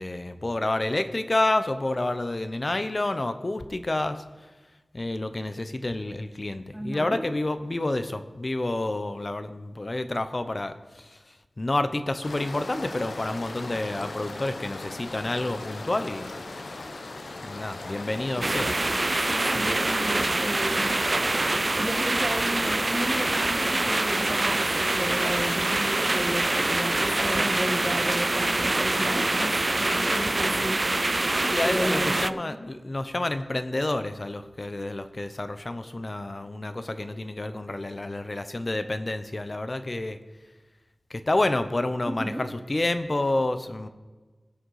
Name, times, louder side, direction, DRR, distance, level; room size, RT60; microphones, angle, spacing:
voice 1, 0.0-4.2 4.9-11.2 11.6-16.3 17.4-18.8 19.5-19.7 31.4-40.2 41.1-43.9, left 2 dB, 40° left, 10 dB, 0.8 m, -29 dB
voice 2, 6.7-7.2 18.3-19.0 19.2-20.8 21.8-30.8 31.6-32.6 42.1-42.4, equal, 5° right, 4 dB, 1.5 m, -33 dB
sound 1, 12.2-30.6, left 2 dB, 75° left, 1.0 m, -38 dB
sound 2, 18.4-32.3, right 2 dB, 40° right, 0.3 m, -25 dB
18.0 x 6.5 x 4.8 m, 1.3 s
wide cardioid pair, 70°, 0 cm